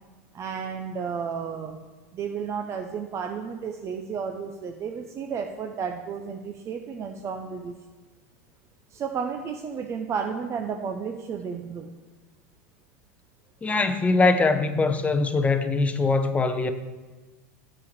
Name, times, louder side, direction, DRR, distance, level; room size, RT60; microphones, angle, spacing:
voice 1, 0.3-1.8 2.1-7.7 8.9-11.9, right 6 dB, 35° right, 0.7 m, -32 dB
voice 2, 13.6-16.7, left 3 dB, 15° left, 0.8 m, -22 dB
8.2 x 5.3 x 6.6 m
hypercardioid pair, 100°, 9 cm